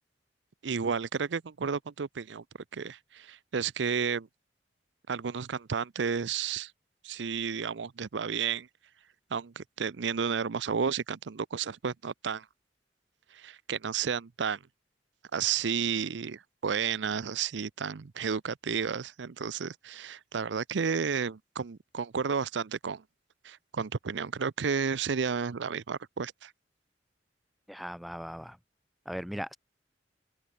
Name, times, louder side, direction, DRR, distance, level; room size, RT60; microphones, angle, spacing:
voice 1, 0.6-2.4 2.7-4.3 5.1-6.7 7.0-8.7 9.3-12.5 13.3-14.6 15.3-23.0 23.4-26.5, right 6 dB, 90° right, 0.6 m, -32 dB
voice 2, 27.7-28.6 29.0-29.6, equal, ahead, 1.3 m, -38 dB
head